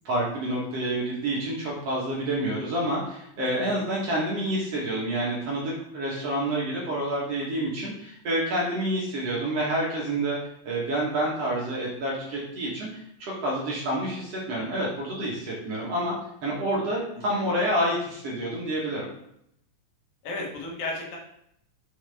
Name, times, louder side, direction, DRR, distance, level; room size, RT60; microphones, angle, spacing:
voice 1, 0.0-10.4 10.7-16.1 16.4-19.0, right 1 dB, 55° right, -4 dB, 2.1 m, -28 dB
voice 2, 20.2-21.2, left 2 dB, 80° left, -2 dB, 3.3 m, -33 dB
6.5 x 5.8 x 3.5 m, 0.75 s
omnidirectional pair, 4.1 m